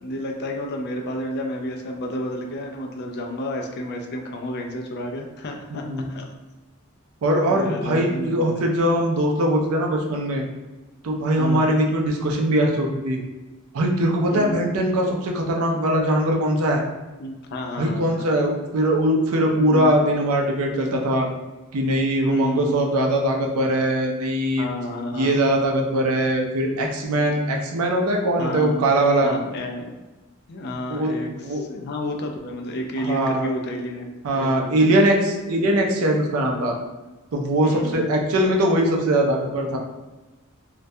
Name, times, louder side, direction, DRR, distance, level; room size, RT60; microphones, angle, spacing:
voice 1, 0.0-6.3 7.3-8.6 11.4-11.7 14.3-14.6 15.7-15.8 17.2-18.3 19.6-20.0 22.2-22.8 24.6-25.4 26.6-26.7 28.4-28.9 29.2-30.0 30.5-34.1 34.3-34.7 37.6-38.1, left 1 dB, 50° left, 2 dB, 0.3 m, -31 dB
voice 2, 5.7-6.1 7.2-10.4 11.0-13.2 13.7-16.8 17.8-21.3 21.7-24.7 25.1-29.3 30.9-31.6 33.0-33.5 34.2-36.7 37.3-39.8, right 1 dB, 80° right, 1 dB, 0.4 m, -21 dB
2.2 x 2.1 x 2.6 m, 1.1 s
head